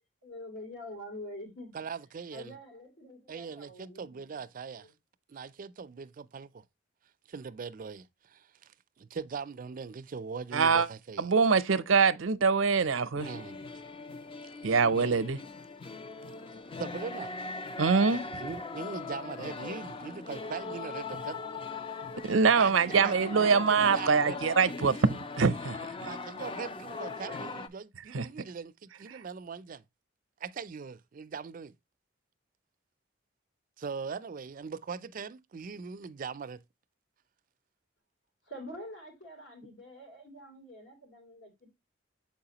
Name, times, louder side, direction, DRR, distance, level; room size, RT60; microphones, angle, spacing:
voice 1, 0.2-1.7 2.3-4.3 4.7-4.9 19.1-19.8 38.4-41.7, left 1 dB, 65° left, 3.0 m, -46 dB
voice 2, 1.7-2.5 3.3-4.9 5.3-6.6 7.3-8.7 9.0-11.3 13.2-13.6 16.8-17.3 18.3-21.4 22.3-24.4 26.0-29.8 30.4-31.7 33.8-36.6, right 5 dB, 45° right, 0.4 m, -41 dB
voice 3, 10.5-10.9 11.2-13.3 14.6-15.4 17.8-18.2 22.2-25.8 28.1-28.3 29.1-29.2, right 5 dB, 90° right, 0.6 m, -24 dB
sound 1, 13.2-27.7, left 3 dB, 25° left, 0.4 m, -40 dB
7.2 x 4.8 x 2.8 m
head